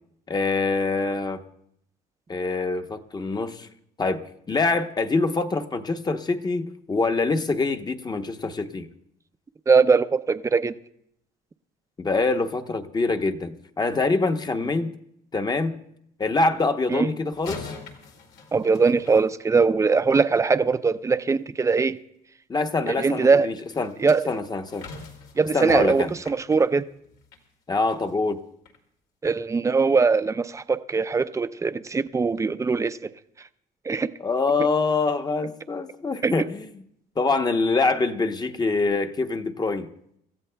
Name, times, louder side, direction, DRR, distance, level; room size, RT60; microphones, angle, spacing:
voice 1, 0.3-1.4 2.3-3.7 4.0-8.9 12.0-14.9 15.3-15.7 16.2-17.7 22.5-24.0 24.3-24.9 25.5-26.1 27.7-28.4 34.2-36.8 37.2-39.9, left 3 dB, 25° left, 0.9 m, -25 dB
voice 2, 9.7-10.7 16.9-17.1 18.5-22.0 22.9-23.5 24.0-24.2 25.4-26.8 29.2-33.0 33.9-34.1 36.2-36.3, right 4 dB, 20° right, 0.5 m, -21 dB
sound 1, 17.3-19.9 23.7-27.5 27.9-28.1 28.7-28.8, left 4 dB, 80° left, 2.4 m, -43 dB
27.5 x 14.0 x 2.2 m
cardioid pair, 110°, 17 cm